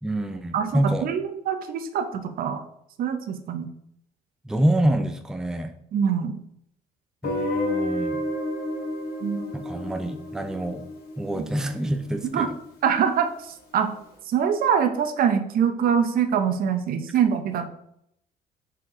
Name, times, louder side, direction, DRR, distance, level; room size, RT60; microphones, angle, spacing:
voice 1, 0.0-1.1 4.4-5.7 7.2-8.2 9.5-10.8 11.2-12.5, right 1 dB, 5° right, 7 dB, 0.5 m, -26 dB
voice 2, 0.5-2.6 3.0-3.7 5.9-6.4 9.2-9.4 11.4-11.5 12.3-12.5 12.8-13.3 13.7-13.9 14.3-17.7, right 7 dB, 60° right, 8 dB, 0.8 m, -24 dB
Guitar, 7.2-12.1, left 1 dB, 65° left, 1.8 m, -31 dB
6.4 x 4.6 x 3.7 m, 0.74 s
cardioid pair, 110°, 17 cm